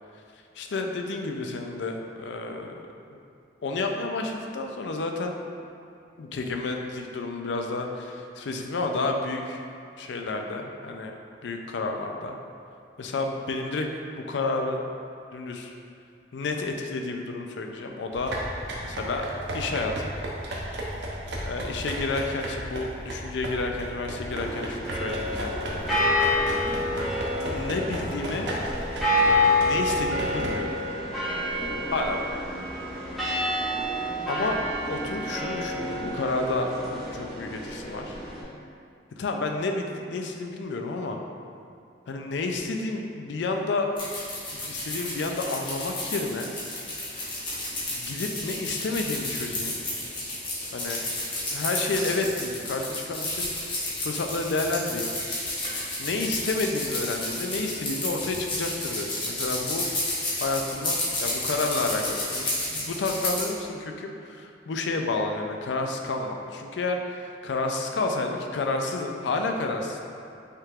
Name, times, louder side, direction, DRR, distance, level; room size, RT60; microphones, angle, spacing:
voice 1, 0.6-2.7 3.1-3.2 3.6-5.4 6.2-9.6 10.0-11.1 11.4-12.4 13.0-13.9 14.2-14.8 15.3-15.7 16.3-18.3 18.8-19.3 19.5-20.1 21.4-26.0 27.4-28.5 29.6-30.8 31.9-32.4 34.3-34.6 34.9-38.2 39.2-41.2 42.1-43.9 44.5-46.5 47.9-49.8 50.7-51.0 51.5-55.1 56.0-59.9 60.4-70.0, left 3 dB, 75° left, 3 dB, 0.4 m, -30 dB
sound 1, 18.1-30.5, right 1 dB, 75° right, 0.7 m, -35 dB
sound 2, 24.3-38.4, left 1 dB, ahead, 0.9 m, -28 dB
sound 3, 44.0-63.5, left 2 dB, 25° left, 0.9 m, -31 dB
5.4 x 3.7 x 2.4 m, 2.5 s
head